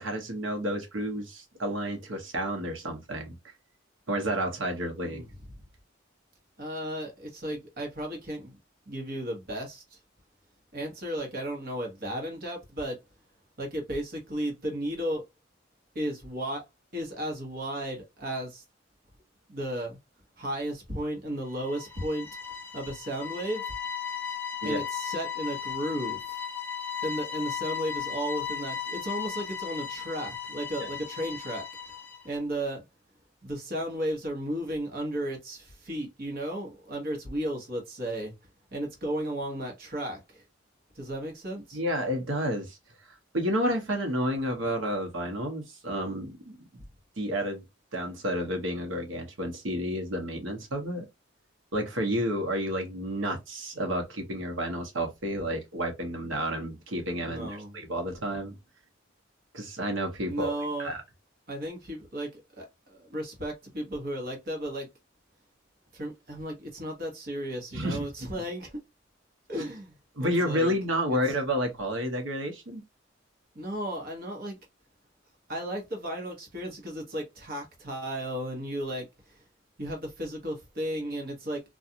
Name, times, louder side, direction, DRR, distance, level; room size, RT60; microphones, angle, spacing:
voice 1, 0.0-3.4 4.1-5.2 24.6-24.8 30.8-30.9 41.7-42.8 43.1-46.6 47.2-47.6 47.9-51.1 51.7-58.5 59.5-60.5 60.8-61.0 67.7-68.1 68.3-68.4 70.2-72.8, equal, 80° right, 0.9 m, -30 dB
voice 2, 6.6-8.6 8.9-10.0 10.7-13.0 13.6-15.3 15.9-16.6 16.9-18.6 19.5-20.0 20.4-22.3 22.7-23.7 24.6-26.4 27.0-32.0 32.2-32.8 33.4-38.3 38.7-40.4 40.9-41.8 57.3-57.8 60.3-60.9 61.5-64.9 65.9-68.8 69.5-70.7 73.5-74.6 75.5-79.4 79.8-81.6, right 1 dB, 50° right, 1.1 m, -34 dB
sound 1, 21.5-32.3, left 8 dB, 10° left, 0.4 m, -36 dB
2.4 x 2.4 x 2.7 m
head